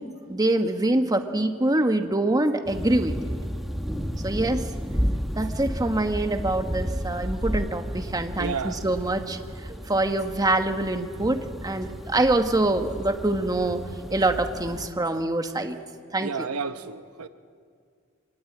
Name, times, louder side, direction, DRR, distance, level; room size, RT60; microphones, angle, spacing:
voice 1, 0.3-3.1 4.2-4.6 5.3-9.4 9.7-13.8 14.1-15.8 16.1-16.5, right 2 dB, 15° right, 6 dB, 1.3 m, -25 dB
sound 1, 2.7-14.9, equal, ahead, 1.0 m, -32 dB
voice 2, 8.4-8.8 16.2-17.3, right 5 dB, 85° right, 10 dB, 1.0 m, -31 dB
25.0 x 19.5 x 8.7 m, 2.2 s
head